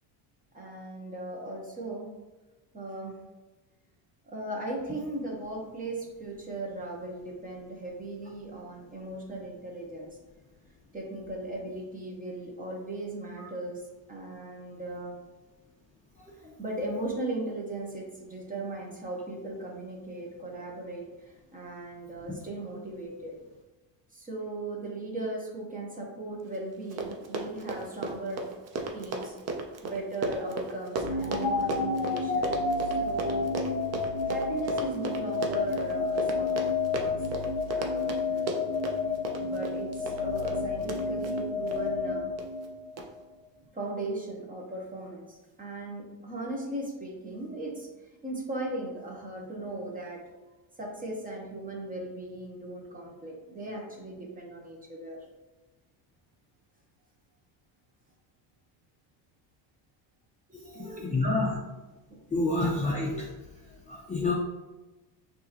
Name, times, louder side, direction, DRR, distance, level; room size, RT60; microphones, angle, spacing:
voice 1, 0.5-2.1 2.7-3.2 4.2-10.2 10.9-13.8 14.1-15.1 16.4-23.3 24.1-28.4 28.8-29.3 29.8-33.5 34.2-36.6 36.9-37.4 37.7-38.9 39.4-42.3 43.7-47.9 48.2-50.2 50.8-55.2 60.5-61.3 62.1-62.2, right 2 dB, 20° right, -1 dB, 0.9 m, -38 dB
Run, 26.5-26.6 26.8-41.8 42.4-42.7 43.0-43.1, right 3 dB, 35° right, 0.5 m, -35 dB
sound 1, 31.0-43.1, left 4 dB, 35° left, 1.1 m, -30 dB
voice 2, 60.8-61.5 62.3-63.3 63.9-64.3, left 2 dB, 15° left, -4 dB, 0.5 m, -28 dB
6.2 x 2.9 x 2.8 m, 1.1 s
cardioid pair, 145°, 47 cm